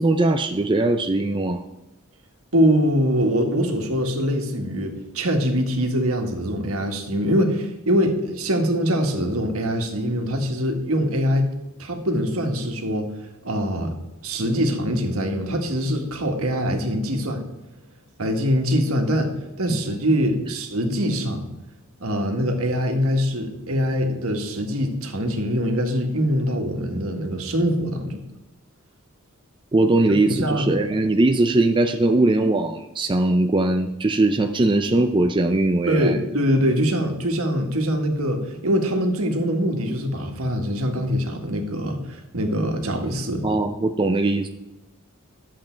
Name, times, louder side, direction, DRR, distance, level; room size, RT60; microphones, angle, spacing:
voice 1, 0.0-1.6 19.7-19.8 29.7-36.2 43.4-44.5, right 2 dB, 20° right, 5 dB, 0.5 m, -20 dB
voice 2, 2.5-11.5 11.8-13.1 13.4-13.9 14.2-17.4 18.2-19.3 19.6-21.5 22.0-28.2 30.3-30.7 35.9-43.5, equal, 80° right, 3 dB, 1.6 m, -23 dB
11.5 x 7.5 x 4.5 m, 0.96 s
head